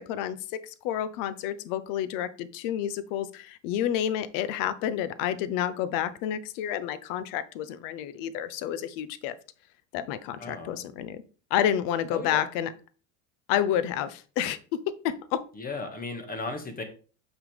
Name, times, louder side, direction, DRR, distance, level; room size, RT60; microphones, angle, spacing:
voice 1, 0.0-9.4 9.9-11.2 11.5-12.7 13.5-15.4, left 10 dB, 60° left, 15 dB, 0.9 m, -29 dB
voice 2, 10.4-10.8 12.1-12.4 15.5-16.8, left 3 dB, 25° left, 6 dB, 1.8 m, -35 dB
6.9 x 5.8 x 3.4 m, 0.38 s
hypercardioid pair, 90°, 38 cm